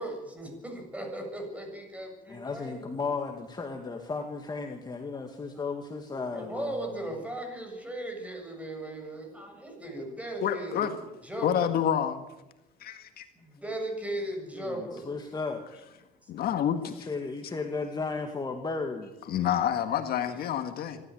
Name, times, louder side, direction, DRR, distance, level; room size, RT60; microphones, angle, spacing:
voice 1, 0.0-3.0 6.3-10.9 11.2-11.8 13.4-15.3 16.2-16.3, right 1 dB, 10° right, 3 dB, 7.4 m, -37 dB
voice 2, 2.3-7.0 14.5-15.6 17.0-19.1, left 4 dB, 25° left, 4 dB, 2.1 m, -35 dB
voice 3, 10.4-11.0 11.4-12.2 12.8-13.3 16.3-17.1 19.3-21.0, left 9 dB, 65° left, 7 dB, 1.8 m, -28 dB
25.0 x 13.5 x 7.9 m, 0.97 s
cardioid pair, 110°, 17 cm